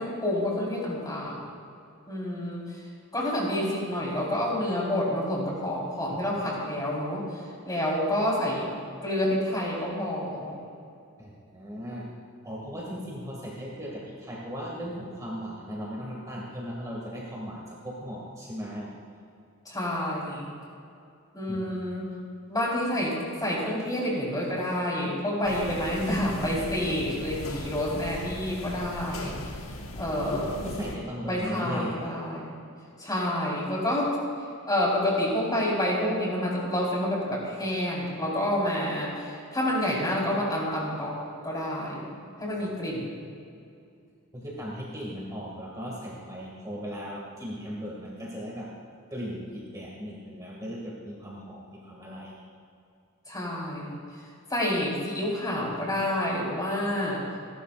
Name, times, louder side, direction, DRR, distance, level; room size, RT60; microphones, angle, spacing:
voice 1, 0.0-1.4 2.1-2.8 3.1-8.7 9.0-10.6 19.6-20.5 21.3-22.0 22.5-29.3 30.0-30.6 31.3-32.5 33.0-34.2 34.7-41.2 41.4-43.1 53.3-54.0 54.5-57.2, left 1 dB, 20° left, -4 dB, 4.3 m, -28 dB
voice 2, 11.2-12.0 12.4-18.9 21.5-22.0 30.6-32.1 42.6-42.7 44.3-48.7 49.1-52.3, equal, 15° right, -4 dB, 2.3 m, -37 dB
sound 1, 25.4-31.0, left 1 dB, 75° left, 1.6 m, -38 dB
29.5 x 12.5 x 2.6 m, 2.5 s
head